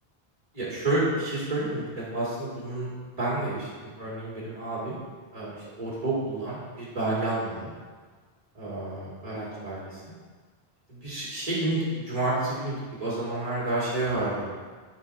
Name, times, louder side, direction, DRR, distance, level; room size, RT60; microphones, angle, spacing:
voice 1, 0.5-5.0 5.3-7.7 8.5-10.0 10.9-14.5, right 2 dB, 35° right, -9 dB, 2.3 m, -30 dB
11.5 x 4.6 x 2.6 m, 1.5 s
omnidirectional pair, 1.0 m